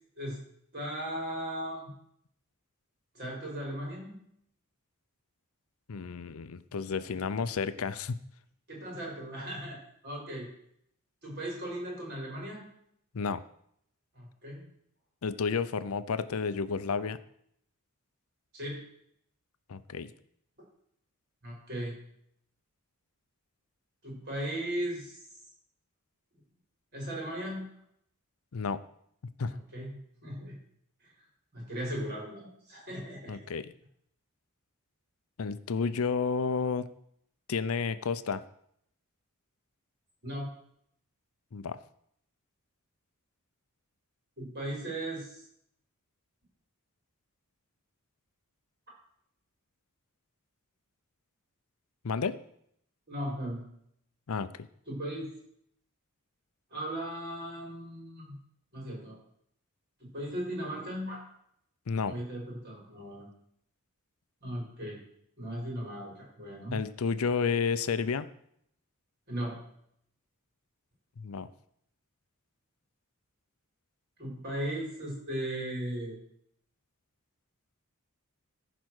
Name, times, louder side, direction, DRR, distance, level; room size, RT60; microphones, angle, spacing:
voice 1, 0.7-1.9 3.1-4.2 8.7-9.8 10.0-10.5 11.2-12.6 14.1-14.7 18.5-18.8 21.4-22.0 24.0-25.2 26.9-27.7 29.5-30.6 31.0-31.1 31.5-33.4 40.2-40.5 44.4-45.4 53.1-53.7 54.9-55.3 56.7-58.3 58.7-59.2 60.0-61.3 62.1-63.3 64.4-65.0 65.4-66.8 69.3-69.6 74.2-76.2, right 1 dB, 45° right, -2 dB, 5.4 m, -37 dB
voice 2, 5.9-8.2 13.1-13.4 15.2-17.2 19.7-20.1 28.5-28.8 29.4-29.6 33.3-33.7 35.4-36.9 37.5-38.4 41.5-41.8 52.0-52.4 54.3-54.5 61.9-62.2 66.7-68.3 71.2-71.5, left 5 dB, 70° left, 13 dB, 0.6 m, -31 dB
14.5 x 5.0 x 6.4 m, 0.70 s
head